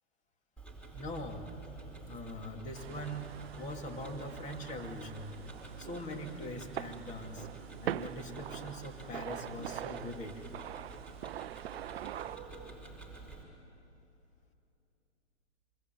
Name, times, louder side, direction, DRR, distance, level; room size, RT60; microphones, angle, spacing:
Tick-tock, 0.6-13.4, right 4 dB, 5° left, 4.6 m, -50 dB
voice 1, 0.9-1.5 2.0-5.4 5.8-7.5 7.8-10.4, left 1 dB, 20° left, 4 dB, 2.8 m, -42 dB
sound 1, 2.7-12.4, right 12 dB, 55° right, 0.7 m, -43 dB
sound 2, 11.2-12.7, right 8 dB, 20° right, 1.9 m, -60 dB
25.0 x 24.5 x 9.4 m, 2.8 s
hypercardioid pair, 130°, 36 cm